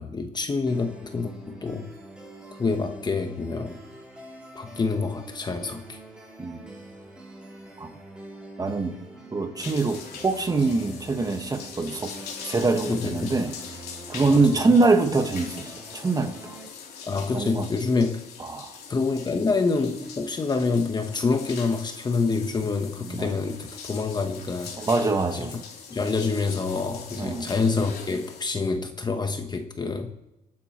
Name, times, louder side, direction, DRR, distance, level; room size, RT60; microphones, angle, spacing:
voice 1, 0.0-1.9 2.6-3.8 4.5-6.0 12.8-13.4 14.3-14.6 17.0-18.2 18.9-24.8 25.3-25.5 25.9-30.2, left 4 dB, 25° left, 7 dB, 1.1 m, -27 dB
sound 1, 0.7-16.7, right 1 dB, 5° right, 4.0 m, -45 dB
voice 2, 8.6-9.0 9.3-12.1 12.4-13.5 14.1-16.6 17.3-17.7 18.4-18.8 23.0-23.3 24.8-25.5 27.2-27.4, right 3 dB, 20° right, 6 dB, 1.6 m, -24 dB
sound 2, 9.6-28.4, left 6 dB, 65° left, 3.2 m, -42 dB
27.5 x 9.2 x 3.1 m, 0.93 s
cardioid pair, 110°, 17 cm